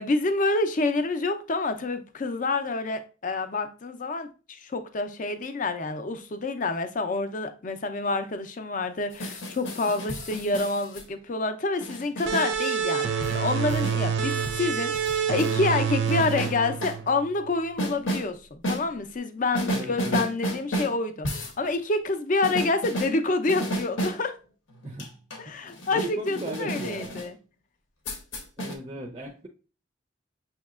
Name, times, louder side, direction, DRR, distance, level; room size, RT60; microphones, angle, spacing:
voice 1, 0.0-24.3 25.4-27.4, left 3 dB, 40° left, 0.5 m, -28 dB
sound 1, 9.1-11.0 11.8-12.5 13.2-14.0 14.4-15.5 16.1-17.0 17.8-18.3 18.6-18.8 19.5-21.0 21.2-21.6 22.4-23.1 23.5-24.2 24.7-27.3 28.1-28.8, equal, 90° left, 1.0 m, -32 dB
sound 2, 12.3-17.5, right 7 dB, 75° right, 0.5 m, -27 dB
voice 2, 19.7-20.2 24.8-25.1 25.9-27.2 28.6-29.5, right 1 dB, 25° right, 0.4 m, -36 dB
6.2 x 2.8 x 2.4 m
head